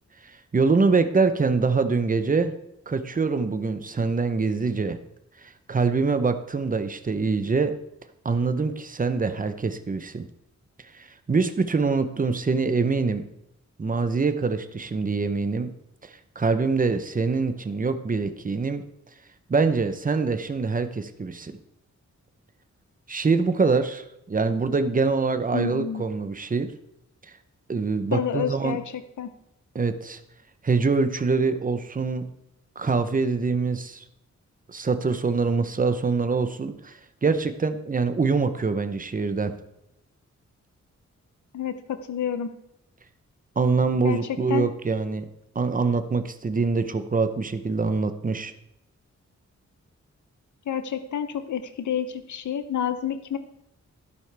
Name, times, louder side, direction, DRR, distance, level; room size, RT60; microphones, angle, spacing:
voice 1, 0.2-2.5 2.9-5.0 5.4-7.7 8.2-10.3 10.9-13.2 13.8-15.7 16.0-18.8 19.5-21.6 23.1-26.7 27.7-28.8 29.7-30.2 30.6-32.3 32.8-34.0 34.7-39.5 43.6-45.3 45.5-48.5, right 4 dB, 30° right, 9 dB, 0.7 m, -24 dB
voice 2, 25.5-26.0 28.1-28.8 29.2-29.3 41.5-42.5 44.0-44.7 50.7-53.4, left 8 dB, 80° left, 10 dB, 0.7 m, -29 dB
12.5 x 11.5 x 3.4 m, 0.82 s
wide cardioid pair, 160°, 29 cm